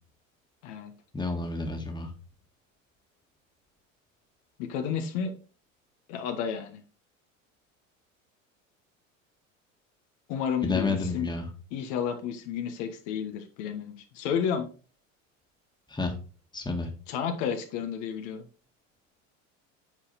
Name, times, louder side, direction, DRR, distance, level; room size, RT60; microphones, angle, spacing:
voice 1, 1.1-2.1 10.6-11.5 15.9-16.1 16.5-16.9, left 3 dB, 10° left, 3 dB, 1.8 m, -30 dB
voice 2, 4.6-5.3 6.1-6.8 10.3-11.3 11.7-14.7 17.1-18.5, left 7 dB, 65° left, 5 dB, 1.4 m, -31 dB
8.7 x 4.2 x 4.1 m, 0.38 s
hypercardioid pair, 85°, 39 cm